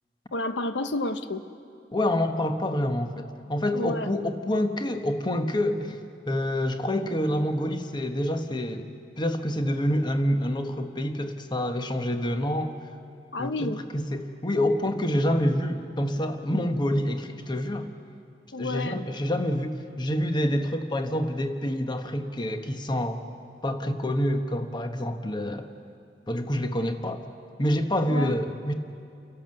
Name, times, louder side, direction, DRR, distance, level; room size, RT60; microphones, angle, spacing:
voice 1, 0.3-1.4 3.7-4.1 13.3-13.8 18.5-19.0 28.1-28.3, left 2 dB, 85° left, 9 dB, 0.9 m, -30 dB
voice 2, 1.9-8.9 9.2-12.7 13.4-17.9 18.6-23.2 23.6-25.7 26.3-27.3 27.6-28.7, left 1 dB, 25° left, 7 dB, 1.1 m, -27 dB
30.0 x 11.5 x 7.7 m, 2.5 s
head